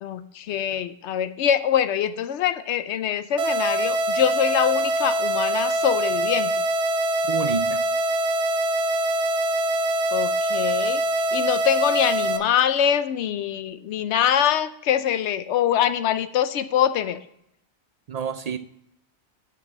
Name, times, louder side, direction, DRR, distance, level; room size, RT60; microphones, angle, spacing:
voice 1, 0.0-6.6 10.1-11.0 11.3-17.2, left 9 dB, 80° left, 0.9 m, -24 dB
sound 1, 3.4-12.4, right 1 dB, 90° right, 1.1 m, -24 dB
voice 2, 7.3-7.9 18.1-18.6, right 6 dB, 60° right, 0.4 m, -28 dB
6.1 x 6.0 x 7.3 m
omnidirectional pair, 1.1 m